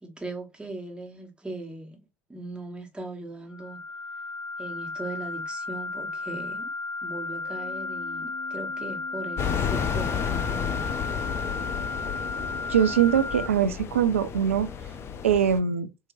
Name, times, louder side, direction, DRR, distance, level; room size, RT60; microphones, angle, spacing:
voice 1, 0.0-3.8 4.6-6.7 7.0-10.9, right 2 dB, 15° right, 1.3 m, -39 dB
sound 1, 3.5-13.5, left 3 dB, 10° left, 1.0 m, -34 dB
Organ, 7.4-14.0, left 11 dB, 65° left, 1.0 m, -46 dB
sound 2, 9.4-15.6, left 7 dB, 40° left, 0.5 m, -32 dB
voice 2, 12.7-14.7 15.2-15.9, right 8 dB, 80° right, 0.4 m, -22 dB
4.6 x 2.9 x 2.6 m
figure-of-eight pair, 65°, 7 cm